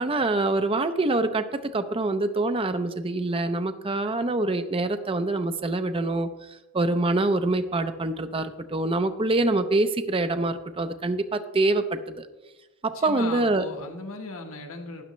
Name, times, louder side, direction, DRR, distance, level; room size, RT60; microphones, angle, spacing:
voice 1, 0.0-6.3 6.7-12.2 12.8-13.6, right 2 dB, 25° right, 9 dB, 0.5 m, -25 dB
voice 2, 12.9-15.0, left 3 dB, 75° left, 3 dB, 1.3 m, -37 dB
12.5 x 9.3 x 3.1 m, 1.1 s
head